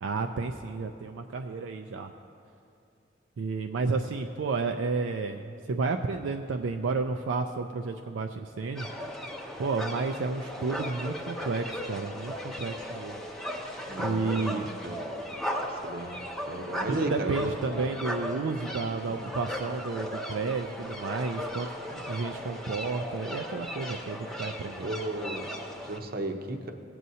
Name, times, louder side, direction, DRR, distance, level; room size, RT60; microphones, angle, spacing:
voice 1, 0.0-2.1 3.4-8.9 9.6-13.2 14.0-14.8 16.9-21.7 22.1-24.9, right 4 dB, 75° right, 5 dB, 0.4 m, -31 dB
sound 1, 8.8-26.0, equal, ahead, 0.7 m, -37 dB
voice 2, 13.9-15.0 15.8-17.5 19.1-19.3 21.9-22.1 24.8-25.5 25.8-26.7, right 2 dB, 50° right, 4 dB, 0.8 m, -35 dB
18.5 x 7.7 x 2.8 m, 2.6 s
head